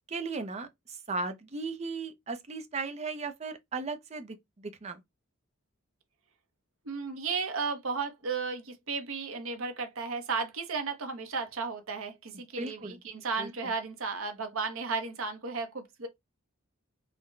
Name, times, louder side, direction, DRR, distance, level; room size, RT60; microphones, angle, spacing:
voice 1, 0.1-5.0 12.6-13.0 13.4-13.5, right 3 dB, 30° right, 0.5 m, -36 dB
voice 2, 6.8-16.1, right 4 dB, 70° right, 0.8 m, -34 dB
3.8 x 2.1 x 3.1 m
head